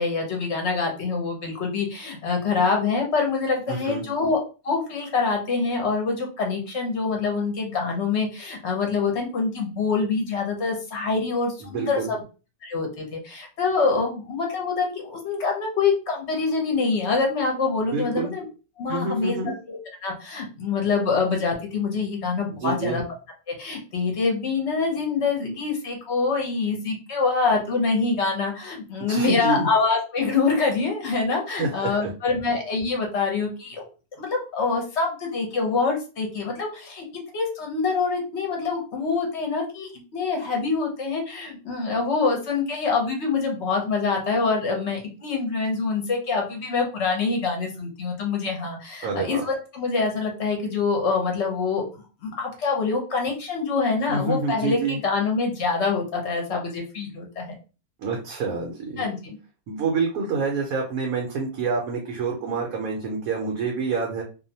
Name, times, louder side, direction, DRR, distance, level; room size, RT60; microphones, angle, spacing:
voice 1, 0.0-12.2 12.6-18.4 18.8-23.0 23.5-33.9 34.2-37.0 37.3-51.8 52.2-57.5 59.0-59.2, left 4 dB, 60° left, 1 dB, 0.9 m, -25 dB
voice 2, 3.7-4.0 11.6-12.1 17.9-18.3 18.9-19.5 22.6-23.0 29.0-29.7 31.5-32.1 49.0-49.4 54.1-55.0 58.0-59.1 59.7-64.2, right 4 dB, 80° right, -1 dB, 1.1 m, -27 dB
2.6 x 2.1 x 2.7 m, 0.33 s
omnidirectional pair, 1.5 m